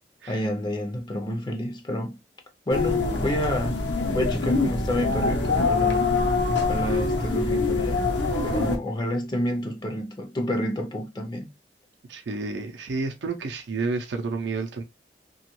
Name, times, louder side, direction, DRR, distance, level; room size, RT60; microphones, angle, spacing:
voice 1, 0.3-2.2 2.7-3.8 4.1-6.1 6.6-11.5, equal, 25° left, 0.4 m, -29 dB
sound 1, 2.7-8.8, left 3 dB, 85° left, 0.7 m, -24 dB
voice 2, 12.1-14.8, right 3 dB, 80° right, 0.5 m, -30 dB
2.9 x 2.3 x 3.0 m
head